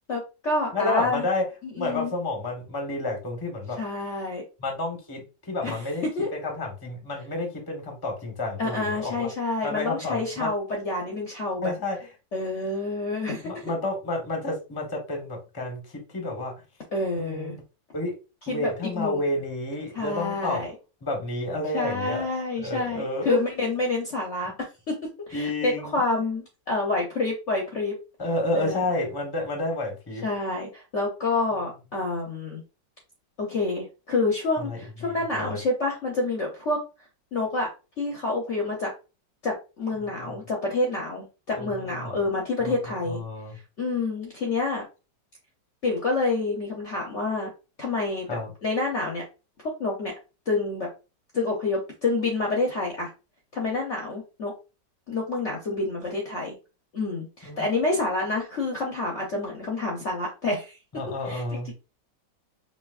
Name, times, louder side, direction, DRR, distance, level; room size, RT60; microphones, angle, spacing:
voice 1, 0.1-1.3 1.6-2.1 3.8-4.4 5.6-5.8 6.2-6.3 8.6-11.7 12.3-13.6 16.9-17.6 18.5-19.2 19.9-20.7 21.7-24.5 24.9-25.0 25.3-28.0 28.5-29.1 30.2-32.6 33.4-36.8 37.3-37.7 38.0-38.9 39.4-43.2 43.8-44.8 45.8-47.5 47.8-49.2 49.8-50.1 50.5-50.9 51.3-53.1 53.5-54.5 55.1-56.5 56.9-60.8 61.2-61.7, left 3 dB, 50° left, -1 dB, 0.9 m, -28 dB
voice 2, 0.7-1.4 1.7-3.8 4.6-6.0 6.3-9.3 9.6-10.5 11.6-12.0 13.4-15.8 16.1-16.5 17.2-17.6 17.9-18.1 18.5-20.6 21.0-22.2 22.6-23.4 25.3-26.0 28.2-30.3 34.6-35.6 41.5-42.1 42.6-42.7 43.1-43.6 48.3-48.5 57.4-57.6 60.9-61.7, left 2 dB, 15° left, 2 dB, 0.9 m, -30 dB
5.1 x 2.8 x 2.4 m, 0.30 s
omnidirectional pair, 2.0 m